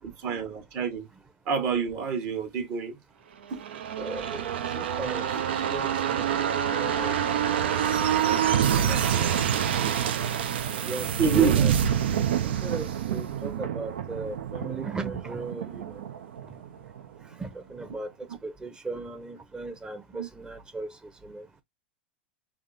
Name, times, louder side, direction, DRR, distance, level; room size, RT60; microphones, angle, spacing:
voice 1, 0.0-1.1 1.5-2.9 3.5-3.6 5.3-5.6 8.3-8.5 8.8-9.4 11.2-11.6 20.1-20.3, right 6 dB, 45° right, 1.1 m, -28 dB
sound 1, 3.5-17.0 17.3-17.4, right 9 dB, 75° right, 0.6 m, -27 dB
voice 2, 4.0-7.1 8.5-8.7 10.8-11.7 12.4-16.0 17.4-18.1 18.4-20.9 21.2-21.5, right 3 dB, 15° right, 0.7 m, -37 dB
3.5 x 2.0 x 3.9 m
hypercardioid pair, 100°, 6 cm